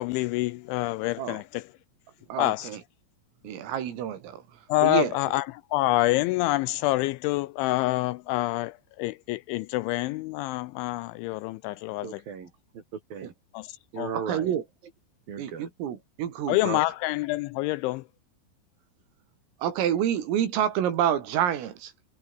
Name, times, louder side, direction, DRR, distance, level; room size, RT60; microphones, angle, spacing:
voice 1, 0.0-1.4 2.4-2.6 4.7-5.4 5.7-8.7 9.0-12.0 14.0-14.1 16.5-18.0, left 19 dB, 80° left, 2.8 m, -26 dB
voice 2, 2.3-2.8 3.4-4.4 4.8-5.2 13.2-13.3 14.1-14.6 15.4-17.0 19.6-21.9, right 10 dB, 90° right, 5.7 m, -28 dB
voice 3, 12.0-13.3 13.9-14.5 15.3-15.7, right 6 dB, 50° right, 5.3 m, -37 dB
omnidirectional pair, 5.8 m